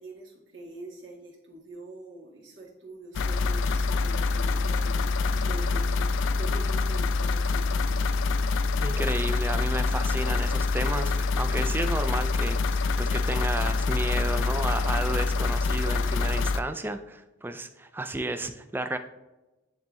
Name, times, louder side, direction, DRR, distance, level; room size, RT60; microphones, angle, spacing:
voice 1, 0.0-8.0, right 2 dB, 80° right, -3 dB, 1.8 m, -44 dB
sound 1, 3.1-16.6, left 3 dB, 85° left, 0.3 m, -26 dB
voice 2, 8.8-19.0, right 2 dB, 10° right, 9 dB, 0.3 m, -32 dB
10.5 x 3.5 x 3.1 m, 1.0 s
head